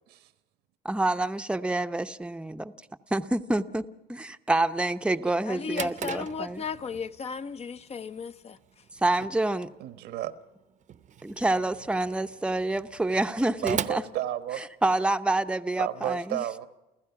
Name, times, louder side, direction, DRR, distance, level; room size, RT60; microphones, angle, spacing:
voice 1, 0.8-2.3 3.1-6.6 9.0-9.7 11.2-14.0 14.8-16.4, right 2 dB, 5° right, 0.7 m, -27 dB
voice 2, 5.4-8.6, left 5 dB, 40° left, 0.8 m, -35 dB
Drawer open or close, 5.4-15.1, right 9 dB, 45° right, 0.8 m, -41 dB
voice 3, 9.8-10.3 13.6-14.6 15.8-16.7, right 12 dB, 85° right, 1.3 m, -32 dB
29.0 x 15.0 x 5.9 m
cardioid pair, 110°, 17 cm